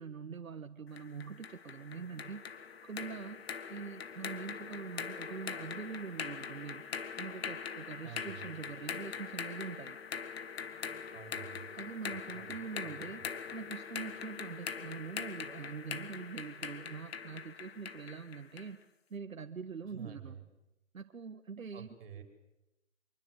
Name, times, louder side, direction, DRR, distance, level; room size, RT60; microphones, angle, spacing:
voice 1, 0.0-2.4 2.8-6.9 7.2-10.0 11.7-13.3 13.5-18.8 19.1-20.4 20.9-21.9, right 5 dB, 85° right, 7 dB, 1.5 m, -44 dB
sound 1, 1.0-18.8, left 6 dB, 50° left, 1.9 m, -42 dB
voice 2, 8.0-8.5 11.1-11.7 12.3-12.6 12.8-13.3 19.9-20.4 21.7-22.2, right 8 dB, 45° right, 7 dB, 5.6 m, -49 dB
25.0 x 23.0 x 8.2 m, 0.93 s
hypercardioid pair, 160°, 40 cm